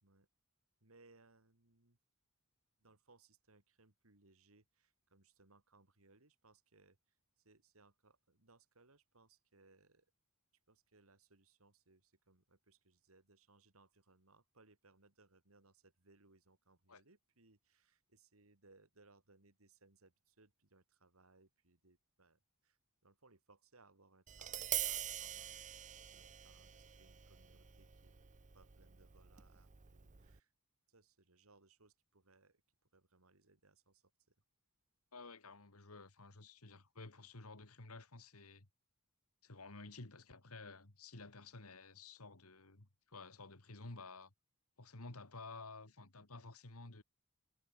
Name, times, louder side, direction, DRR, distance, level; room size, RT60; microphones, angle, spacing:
voice 1, 0.8-2.0 2.8-10.1 10.7-25.6 26.1-28.1 28.5-30.5 30.9-32.6 32.9-34.3, right 3 dB, 70° right, 2.7 m, -69 dB
Tap, 24.3-30.4, right 12 dB, 35° right, 0.7 m, -45 dB
voice 2, 35.1-38.7 39.4-44.3 44.8-47.0, left 3 dB, 85° left, 2.4 m, -53 dB
head